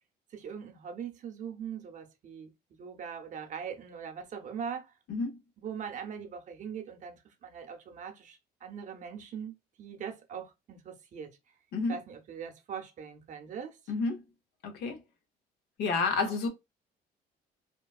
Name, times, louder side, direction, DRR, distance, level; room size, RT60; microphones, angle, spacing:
voice 1, 0.3-5.0 5.6-11.3 11.9-13.8 16.2-16.4, right 7 dB, 50° right, 0.7 m, -41 dB
voice 2, 13.9-14.2 14.6-15.0 15.8-16.5, left 4 dB, 75° left, 0.8 m, -29 dB
2.9 x 2.2 x 2.3 m
cardioid pair, 110°, 17 cm